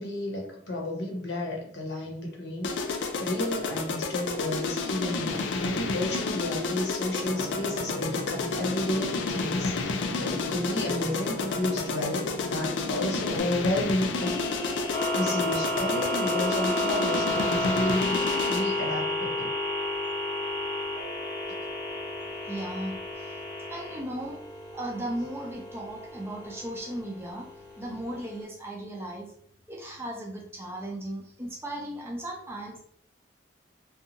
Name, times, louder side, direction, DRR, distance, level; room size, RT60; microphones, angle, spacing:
voice 1, 0.0-14.3 14.8-18.2 18.5-19.5, left 1 dB, 70° left, 0 dB, 0.9 m, -31 dB
sound 1, 2.6-18.8, left 4 dB, 90° left, 0.4 m, -31 dB
sound 2, 7.2-13.4, equal, 85° right, 0.6 m, -39 dB
sound 3, 14.2-28.4, left 1 dB, 20° left, 0.8 m, -32 dB
voice 2, 22.4-23.3 23.7-24.4 24.7-27.5 27.8-29.3 29.7-32.8, right 1 dB, 15° right, -1 dB, 0.4 m, -36 dB
2.6 x 2.3 x 2.8 m, 0.62 s
head